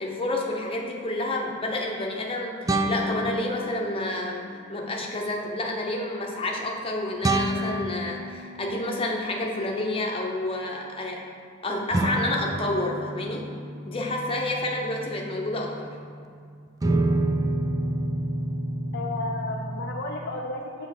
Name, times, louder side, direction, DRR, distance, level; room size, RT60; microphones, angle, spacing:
voice 1, 0.0-4.4 4.7-11.2 11.6-13.5 13.9-15.9, left 1 dB, 25° left, 0 dB, 0.9 m, -29 dB
sound 1, 0.8-0.9 2.7-4.3 7.2-9.6 11.9-16.3 16.8-20.0, right 1 dB, 15° right, 0.3 m, -29 dB
voice 2, 18.9-20.9, left 2 dB, 55° left, 1 dB, 0.5 m, -32 dB
7.2 x 4.1 x 6.5 m, 2.3 s
head